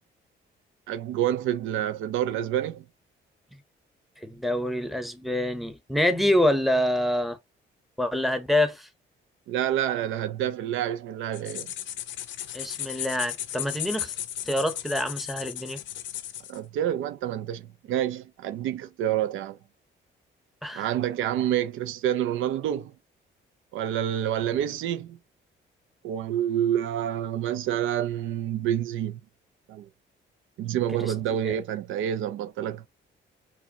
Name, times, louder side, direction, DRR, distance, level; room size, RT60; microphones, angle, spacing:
voice 1, 0.9-2.8 9.5-11.7 16.5-19.6 20.7-22.9 23.7-25.2 26.0-29.2 29.7-29.9 30.6-32.9, right 11 dB, 80° right, 0.5 m, -28 dB
voice 2, 4.2-7.4 8.0-8.9 12.5-14.1 14.4-15.8 20.6-20.9 31.0-31.1 31.4-31.5, left 1 dB, ahead, 0.7 m, -26 dB
sound 1, 11.3-16.6, left 12 dB, 70° left, 0.5 m, -35 dB
4.7 x 2.2 x 2.8 m
cardioid pair, 90°, 20 cm